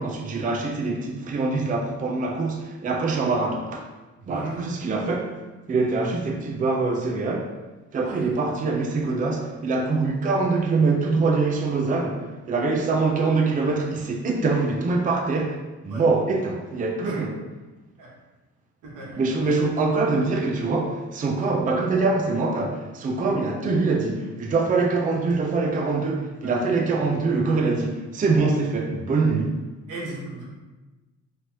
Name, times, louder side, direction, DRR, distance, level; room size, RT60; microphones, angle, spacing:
voice 1, 0.0-3.9 4.3-5.4 5.7-7.5 7.9-17.4 19.2-29.6, right 3 dB, 25° right, 0.5 m, -24 dB
voice 2, 4.2-4.7 8.3-8.4 15.9-16.0 17.0-17.2 18.0-18.1 18.8-19.2 26.4-26.6 29.9-30.5, right 2 dB, 85° right, 1.3 m, -36 dB
4.2 x 3.2 x 2.9 m
cardioid pair, 90°, 30 cm